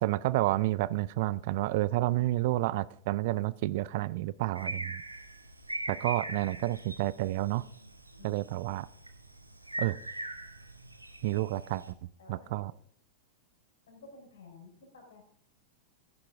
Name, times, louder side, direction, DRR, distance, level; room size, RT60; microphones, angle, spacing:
voice 1, 0.0-5.0 5.9-7.7 8.2-8.9 9.8-10.0 11.2-11.8 12.3-12.7, right 17 dB, 50° right, 19 dB, 0.4 m, -30 dB
sound 1, 4.5-11.9, right 2 dB, 85° right, 1.1 m, -41 dB
voice 2, 8.2-8.5 12.2-12.8 13.9-15.2, left 3 dB, 60° left, 4 dB, 4.1 m, -53 dB
14.5 x 9.9 x 3.6 m, 0.62 s
figure-of-eight pair, 90°, 0 cm